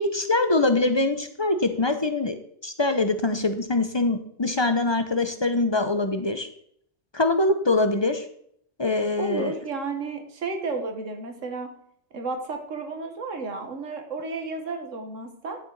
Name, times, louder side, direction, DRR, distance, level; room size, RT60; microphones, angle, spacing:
voice 1, 0.0-2.3 2.6-6.5 7.1-8.3 8.8-9.5, left 2 dB, 30° left, 8 dB, 0.6 m, -23 dB
voice 2, 9.2-11.7 12.1-15.6, right 3 dB, 85° right, 5 dB, 1.7 m, -32 dB
11.0 x 7.0 x 4.0 m, 0.69 s
omnidirectional pair, 1.3 m